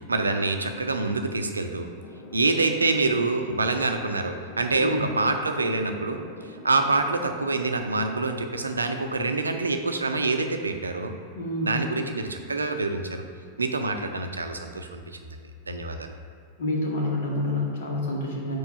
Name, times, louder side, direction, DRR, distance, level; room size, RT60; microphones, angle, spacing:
voice 1, 0.1-1.9 2.3-11.1 11.6-13.2 13.6-15.0 15.7-16.1, right 3 dB, 75° right, 6 dB, 0.5 m, -26 dB
sound 1, 2.0-8.1, left 3 dB, 40° left, 0.7 m, -44 dB
voice 2, 11.3-11.9 16.6-18.6, left 1 dB, 60° left, -1 dB, 1.4 m, -28 dB
4.7 x 4.7 x 5.5 m, 2.2 s
figure-of-eight pair, 90°, 0 cm